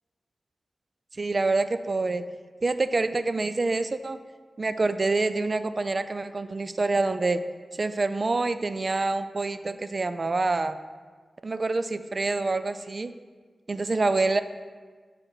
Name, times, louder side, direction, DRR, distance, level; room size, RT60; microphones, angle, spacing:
voice 1, 1.2-2.3 2.6-4.2 4.6-7.4 7.7-10.8 11.4-13.1 13.7-14.4, right 3 dB, 45° right, 12 dB, 0.3 m, -26 dB
6.3 x 4.3 x 4.8 m, 1.5 s
wide cardioid pair, 70°, 0 cm